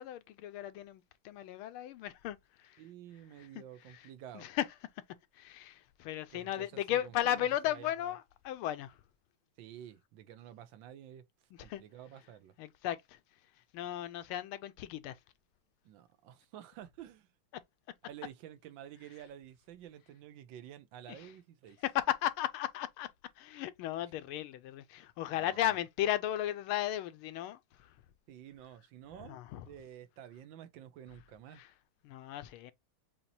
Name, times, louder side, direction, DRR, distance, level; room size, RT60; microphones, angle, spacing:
voice 1, 0.0-2.8 3.4-3.5 3.9-4.1 4.3-4.7 5.3-9.0 11.7-11.8 12.6-13.2 13.7-15.1 21.1-21.3 21.8-23.1 23.4-27.9 29.3-29.6 31.5-31.7 32.0-32.7, left 12 dB, 80° left, 1.4 m, -35 dB
voice 2, 2.8-4.5 6.3-8.1 9.6-11.2 11.6-12.5 15.8-17.3 18.1-21.8 25.3-25.8 28.3-31.6, right 11 dB, 70° right, 1.3 m, -51 dB
7.0 x 2.9 x 2.6 m
omnidirectional pair, 2.4 m